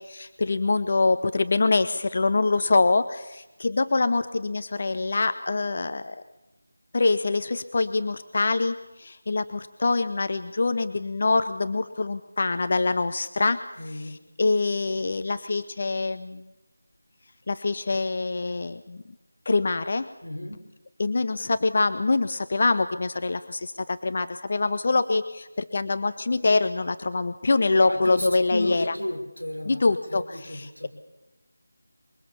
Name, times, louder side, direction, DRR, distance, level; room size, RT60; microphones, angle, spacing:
voice 1, 0.0-6.2 6.9-13.6 13.9-16.4 17.5-19.0 19.5-20.1 21.0-28.8 29.6-30.9, left 3 dB, 40° left, 11 dB, 0.9 m, -25 dB
voice 2, 13.8-14.2 20.2-20.6 27.7-30.9, left 1 dB, 85° left, 4 dB, 6.0 m, -33 dB
25.0 x 23.0 x 7.1 m, 1.0 s
figure-of-eight pair, 165°, 0 cm